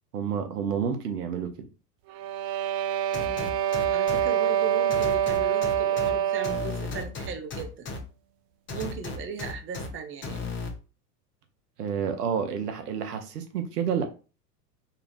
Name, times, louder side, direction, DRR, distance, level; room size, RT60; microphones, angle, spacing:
voice 1, 0.1-1.7 11.8-14.1, right 7 dB, 75° right, 1.2 m, -29 dB
sound 1, 2.1-6.8, right 10 dB, 40° right, 0.6 m, -26 dB
sound 2, 3.1-4.2 4.9-6.1 6.4-8.0 8.7-9.9 10.2-10.7, left 3 dB, 25° left, 1.2 m, -34 dB
voice 2, 3.2-3.6 3.9-7.9 8.7-10.4, right 6 dB, 25° right, 0.9 m, -37 dB
4.3 x 2.8 x 4.0 m
hypercardioid pair, 95°, 48 cm